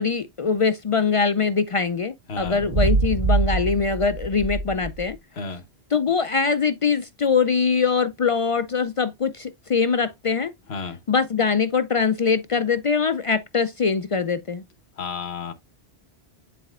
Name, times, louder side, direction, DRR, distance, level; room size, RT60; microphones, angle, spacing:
voice 1, 0.0-5.2 5.9-10.5 11.1-14.6, left 5 dB, 50° left, 0.4 m, -22 dB
sound 1, 2.4-5.2, right 3 dB, 45° right, 0.7 m, -24 dB
voice 2, 15.0-15.5, left 5 dB, 85° left, 1.3 m, -31 dB
10.0 x 4.1 x 2.4 m
omnidirectional pair, 1.1 m